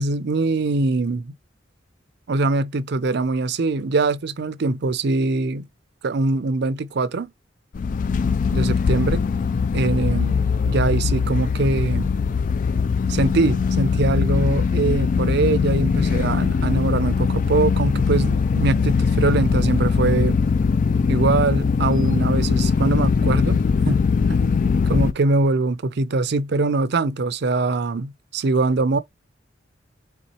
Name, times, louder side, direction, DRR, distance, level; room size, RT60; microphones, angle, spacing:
voice 1, 0.0-1.3 2.3-5.7 6.0-7.3 8.5-9.2 9.7-12.1 13.1-20.4 21.1-29.0, right 3 dB, 60° right, 0.5 m, -23 dB
sound 1, 7.7-25.1, left 5 dB, 45° left, 0.3 m, -21 dB
4.2 x 3.5 x 3.0 m
head